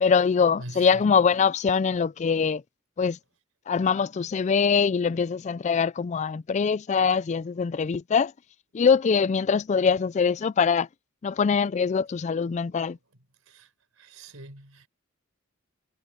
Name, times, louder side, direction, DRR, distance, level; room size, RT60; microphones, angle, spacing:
voice 1, 0.0-2.6 3.0-3.2 3.7-8.3 8.7-10.9 11.2-13.0, left 6 dB, 35° left, 0.3 m, -23 dB
voice 2, 0.6-1.1 13.5-13.7 14.0-14.9, right 1 dB, 80° right, 4.5 m, -43 dB
head